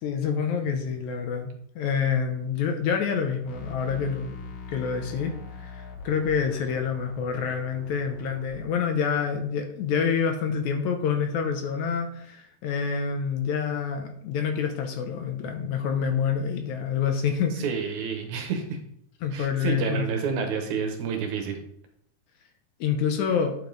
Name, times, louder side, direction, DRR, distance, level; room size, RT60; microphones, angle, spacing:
voice 1, 0.0-4.4 4.7-17.7 19.2-20.1 22.8-23.6, left 6 dB, 70° left, 5 dB, 2.0 m, -27 dB
sound 1, 3.4-8.5, left 3 dB, 55° left, 1.6 m, -42 dB
voice 2, 17.6-18.8 19.3-21.6, right 6 dB, 70° right, 4 dB, 2.3 m, -29 dB
9.4 x 5.3 x 3.9 m, 0.69 s
omnidirectional pair, 3.8 m